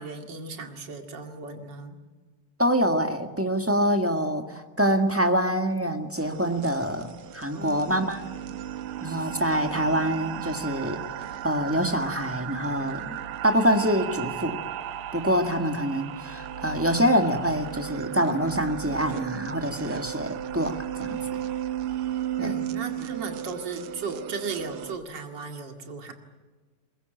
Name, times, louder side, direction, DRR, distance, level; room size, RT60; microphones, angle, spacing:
voice 1, 0.0-2.0 7.5-8.3 22.4-26.1, right 4 dB, 55° right, 5 dB, 2.9 m, -36 dB
voice 2, 2.6-8.2 9.0-11.0 11.4-13.2 13.4-14.6 15.1-21.2 22.4-22.5, equal, 5° right, 6 dB, 1.4 m, -25 dB
sound 1, 6.2-25.0, right 10 dB, 80° right, 1.9 m, -35 dB
22.0 x 21.5 x 9.2 m, 1.3 s
omnidirectional pair, 2.4 m